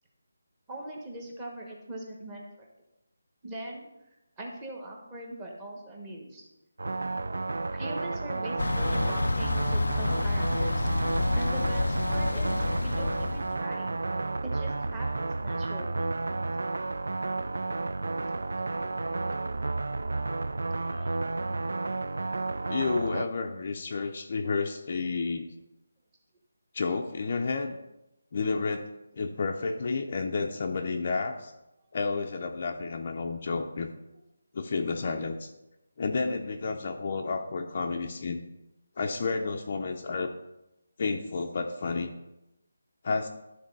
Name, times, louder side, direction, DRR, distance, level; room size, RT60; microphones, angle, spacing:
voice 1, 0.7-2.7 3.4-3.9 4.4-6.5 7.7-10.9 11.3-14.0 14.4-16.1 20.8-21.3, right 1 dB, 10° right, -1 dB, 1.0 m, -41 dB
sound 1, 6.8-23.3, right 3 dB, 65° right, 0.4 m, -31 dB
Thunder / Bicycle, 8.6-13.6, left 2 dB, 85° left, 0.3 m, -29 dB
voice 2, 22.7-25.5 26.7-27.8 28.3-28.9 29.1-31.5 31.9-33.9 34.5-35.5 36.0-38.4 39.0-40.3 41.0-42.1 43.0-43.3, left 4 dB, 30° left, 3 dB, 0.5 m, -31 dB
12.0 x 4.1 x 5.3 m, 0.93 s
figure-of-eight pair, 175°, 0 cm